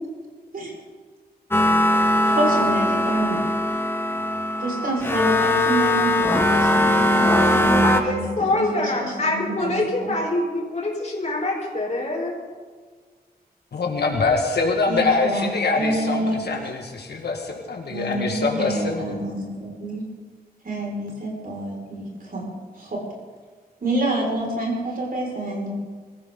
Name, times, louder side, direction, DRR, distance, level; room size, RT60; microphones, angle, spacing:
sound 1, 1.5-8.0, left 1 dB, 15° left, 1.3 m, -20 dB
voice 1, 2.3-3.4 4.6-10.1 14.9-16.4 17.9-20.0 20.6-22.5 22.8-23.0 23.8-25.7, right 1 dB, 60° right, -1 dB, 5.7 m, -28 dB
voice 2, 7.1-12.4, left 2 dB, 45° left, -1 dB, 4.6 m, -25 dB
voice 3, 13.7-19.1, left 3 dB, 90° left, 1 dB, 2.0 m, -24 dB
23.5 x 14.5 x 4.0 m, 1.5 s
wide cardioid pair, 115°, 16 cm